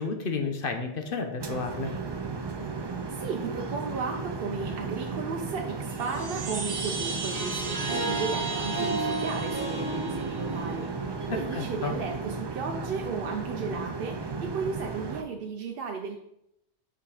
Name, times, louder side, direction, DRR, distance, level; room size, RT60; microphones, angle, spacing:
voice 1, 0.0-1.9 11.3-11.9, left 4 dB, 55° left, 5 dB, 1.0 m, -31 dB
sound 1, 1.4-15.2, right 4 dB, 35° right, 0.4 m, -35 dB
voice 2, 3.1-16.2, right 4 dB, 60° right, 3 dB, 0.8 m, -35 dB
Chime, 5.8-10.5, right 4 dB, 85° right, 1.3 m, -36 dB
Harp, 7.1-12.3, right 2 dB, 40° left, 2.1 m, -34 dB
5.8 x 5.0 x 4.8 m, 0.81 s
omnidirectional pair, 1.2 m